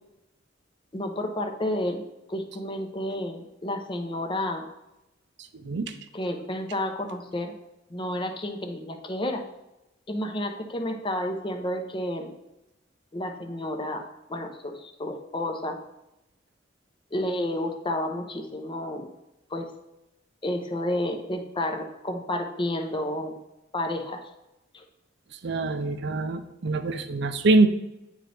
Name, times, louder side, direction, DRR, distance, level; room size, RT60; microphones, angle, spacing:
voice 1, 0.9-2.0 2.3-4.7 6.1-7.6 7.9-9.4 10.1-12.3 13.1-14.0 14.3-15.8 17.1-19.1 19.5-19.7 20.4-23.4 23.7-24.2 24.7-24.8, left 1 dB, 25° left, 5 dB, 0.7 m, -31 dB
voice 2, 5.5-5.9 25.4-27.7, right 3 dB, 65° right, 9 dB, 0.5 m, -24 dB
9.0 x 3.9 x 3.3 m, 0.91 s
head